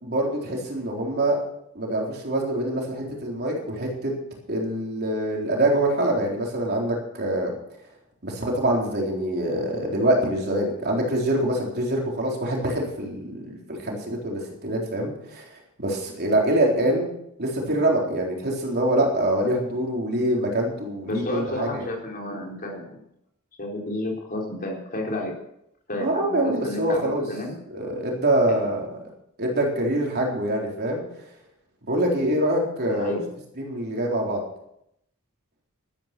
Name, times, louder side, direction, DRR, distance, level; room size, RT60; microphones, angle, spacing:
voice 1, 0.0-1.4 1.7-4.1 4.5-7.5 8.2-15.4 15.8-17.1 17.4-21.8 26.0-27.2 27.7-28.9 29.4-31.0 31.9-33.2 33.6-34.4, right 1 dB, 50° right, -1 dB, 3.9 m, -25 dB
voice 2, 21.1-23.0 23.6-25.4 25.9-27.6 28.5-28.7 32.9-33.3, left 1 dB, 40° left, -1 dB, 4.1 m, -31 dB
13.0 x 12.5 x 6.0 m, 0.78 s
head